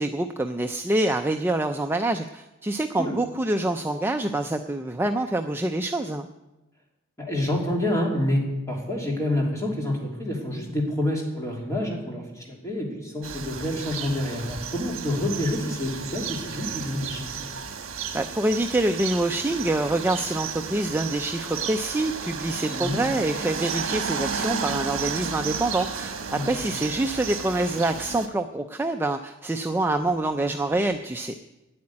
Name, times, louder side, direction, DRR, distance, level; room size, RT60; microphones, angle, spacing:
voice 1, 0.0-6.3 18.1-31.3, right 2 dB, 10° right, 5 dB, 0.4 m, -26 dB
voice 2, 7.2-17.3 22.7-23.0 26.3-26.7, left 1 dB, 15° left, -2 dB, 3.0 m, -28 dB
sound 1, 13.2-28.3, right 6 dB, 70° right, 1.3 m, -33 dB
9.5 x 8.7 x 9.7 m, 1.0 s
head